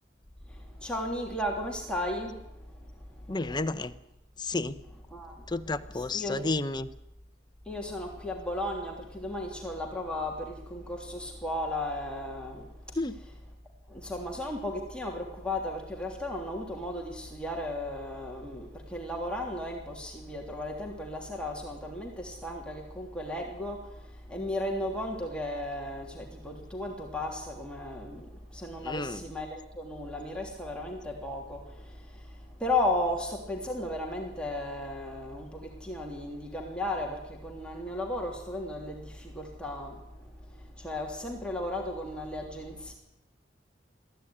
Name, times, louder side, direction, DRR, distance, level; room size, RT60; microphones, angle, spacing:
voice 1, 0.5-2.4 3.2-3.3 5.1-5.5 5.9-6.4 7.7-13.0 13.9-40.0 40.5-42.9, left 1 dB, 5° left, -1 dB, 3.1 m, -35 dB
voice 2, 3.3-3.9 4.4-4.7 5.5-6.9 13.0-13.1 28.8-29.2, left 2 dB, 25° left, 11 dB, 0.8 m, -31 dB
22.0 x 14.5 x 9.9 m, 0.87 s
head